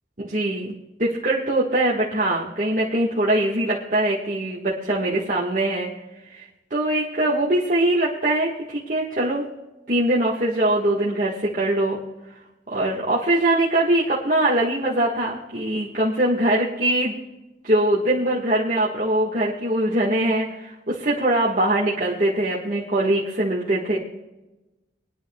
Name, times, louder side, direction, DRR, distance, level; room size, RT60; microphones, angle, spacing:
voice 1, 0.2-5.9 6.3-9.5 9.9-12.0 12.7-17.2 17.6-24.0, right 1 dB, 45° right, -6 dB, 1.6 m, -22 dB
22.0 x 10.5 x 2.3 m, 1.0 s
head